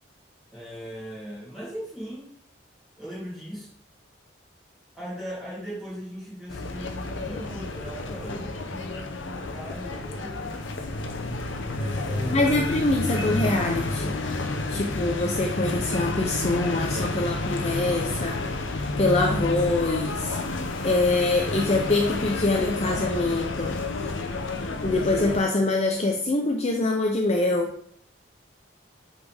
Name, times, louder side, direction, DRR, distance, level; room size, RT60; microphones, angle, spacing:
voice 1, 0.5-2.3 3.0-3.7 4.9-10.6 11.6-12.8, equal, ahead, -8 dB, 3.0 m, -38 dB
sound 1, 6.5-25.4, left 2 dB, 85° left, 0.8 m, -30 dB
voice 2, 12.3-14.2 14.7-20.4 20.8-24.0 24.8-27.7, left 2 dB, 35° left, 1 dB, 0.5 m, -25 dB
8.2 x 4.1 x 3.4 m, 0.64 s
head